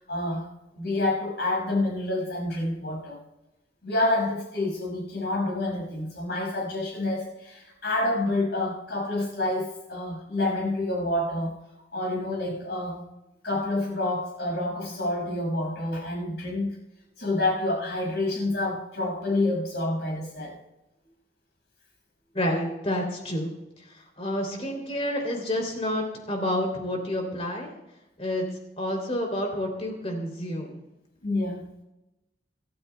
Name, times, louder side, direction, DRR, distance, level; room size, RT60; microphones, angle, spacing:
voice 1, 0.1-0.5 0.7-3.2 3.8-11.6 11.9-13.0 13.4-16.8 17.2-20.6 31.2-31.7, left 2 dB, 70° left, -1 dB, 6.0 m, -28 dB
voice 2, 22.3-27.7 28.2-28.4 28.8-30.8, left 1 dB, 35° left, 2 dB, 3.1 m, -29 dB
28.0 x 12.0 x 2.3 m, 0.96 s
head